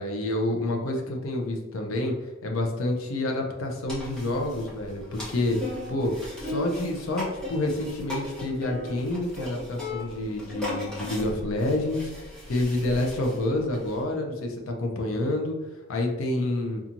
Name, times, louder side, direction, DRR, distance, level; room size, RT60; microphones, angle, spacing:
voice 1, 0.0-15.6 15.9-16.8, left 1 dB, 80° left, 2 dB, 0.5 m, -28 dB
sound 1, 3.9-14.0, left 1 dB, 5° left, 0.8 m, -37 dB
2.9 x 2.3 x 2.5 m, 1.2 s
head